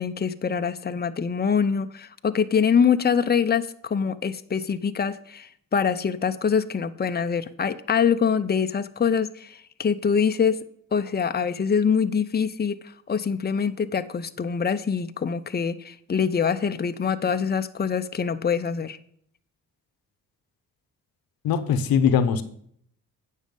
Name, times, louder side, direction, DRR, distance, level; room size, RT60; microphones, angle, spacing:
voice 1, 0.0-10.6 10.9-12.8 13.1-19.0, left 6 dB, 30° left, 10 dB, 0.7 m, -24 dB
voice 2, 21.4-22.4, left 7 dB, 90° left, 11 dB, 0.9 m, -21 dB
9.3 x 6.4 x 5.4 m, 0.65 s
cardioid pair, 70°, 35 cm